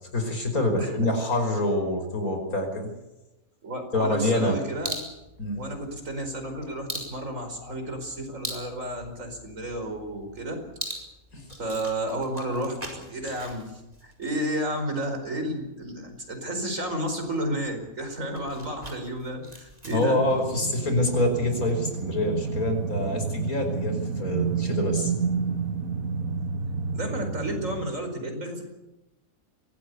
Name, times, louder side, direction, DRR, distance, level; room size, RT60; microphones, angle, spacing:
voice 1, 0.1-2.9 3.9-4.6 5.4-5.6 11.3-11.4 19.9-25.1, left 1 dB, 85° left, 5 dB, 5.8 m, -26 dB
voice 2, 3.6-5.0 5.6-10.6 11.6-20.2 26.9-28.6, right 1 dB, 65° right, 5 dB, 5.2 m, -32 dB
sound 1, 4.8-22.8, right 1 dB, 25° right, 5.1 m, -43 dB
sound 2, 19.9-27.9, right 5 dB, 85° right, 1.8 m, -30 dB
23.5 x 18.0 x 8.3 m, 0.98 s
omnidirectional pair, 1.5 m